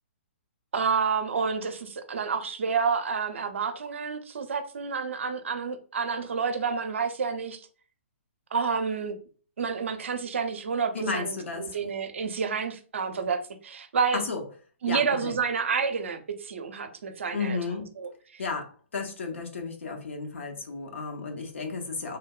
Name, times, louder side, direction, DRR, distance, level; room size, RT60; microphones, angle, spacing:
voice 1, 0.7-7.6 8.5-9.2 9.6-14.2 14.8-17.6 18.0-18.1, right 5 dB, 65° right, 0.5 m, -29 dB
voice 2, 10.9-11.8 14.1-14.4 14.9-15.4 17.3-17.9 18.4-22.2, left 4 dB, 70° left, 0.7 m, -33 dB
3.2 x 2.0 x 2.3 m
figure-of-eight pair, 125°, 7 cm